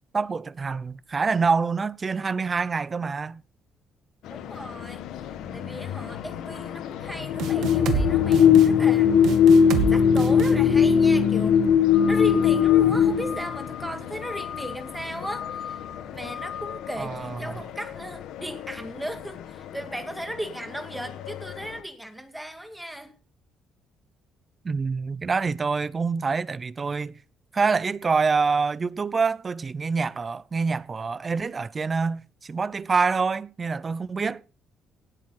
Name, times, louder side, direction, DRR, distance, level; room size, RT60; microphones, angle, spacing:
voice 1, 0.1-3.4 17.0-17.6 24.6-27.1 27.5-34.4, right 4 dB, 25° right, 0.5 m, -26 dB
sound 1, 4.3-21.8, left 7 dB, 85° left, 1.5 m, -22 dB
voice 2, 4.3-9.2 9.9-11.6 12.1-15.8 16.1-23.1, right 1 dB, 5° right, 2.1 m, -36 dB
sound 2, 7.4-8.1 8.3-8.7 9.2-9.9 10.2-10.5, right 7 dB, 75° right, 2.0 m, -27 dB
18.0 x 8.7 x 4.3 m
cardioid pair, 130°, 0 cm